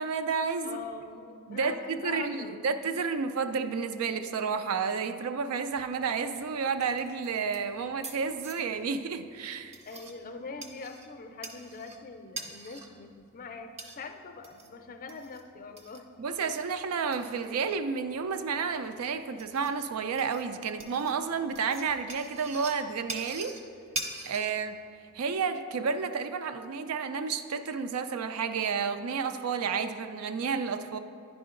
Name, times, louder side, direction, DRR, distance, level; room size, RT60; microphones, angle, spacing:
voice 1, 0.0-0.8 1.5-9.8 16.2-23.6 24.2-24.8 25.1-31.0, right 5 dB, 75° right, 9 dB, 0.4 m, -31 dB
voice 2, 0.6-2.8 9.9-16.1, left 4 dB, 40° left, 6 dB, 0.5 m, -43 dB
sound 1, 5.6-25.2, right 2 dB, 30° right, 0.6 m, -45 dB
10.0 x 4.9 x 3.7 m, 2.4 s
head